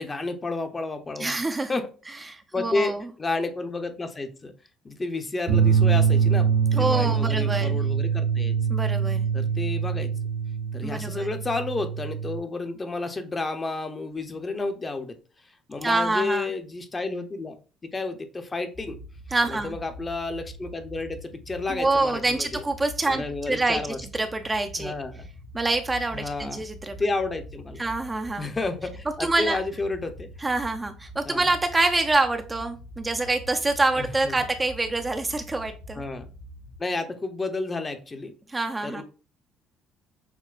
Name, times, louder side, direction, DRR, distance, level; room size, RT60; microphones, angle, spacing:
voice 1, 0.0-1.3 1.7-1.9 2.5-4.5 4.8-8.6 9.3-10.1 10.7-15.2 15.7-17.6 17.9-19.0 19.5-22.6 23.1-24.0 24.8-25.3 26.1-26.6 27.0-27.8 28.4-30.3 31.2-31.5 34.0-34.3 35.9-36.3 36.8-38.3 38.8-39.0, left 3 dB, 25° left, 7 dB, 0.6 m, -31 dB
voice 2, 1.2-1.7 2.3-3.0 6.8-7.8 8.7-9.2 10.8-11.3 15.8-16.5 19.3-19.7 21.7-23.8 24.1-24.9 25.5-26.9 27.8-28.5 29.2-29.6 30.4-36.0 38.5-39.0, right 2 dB, 20° right, 6 dB, 0.4 m, -26 dB
sound 1, 5.5-12.4, right 6 dB, 75° right, 0.7 m, -24 dB
sound 2, 18.7-36.8, left 1 dB, 65° left, 0.7 m, -44 dB
5.9 x 2.1 x 2.4 m, 0.36 s
supercardioid pair, 80°, 0 cm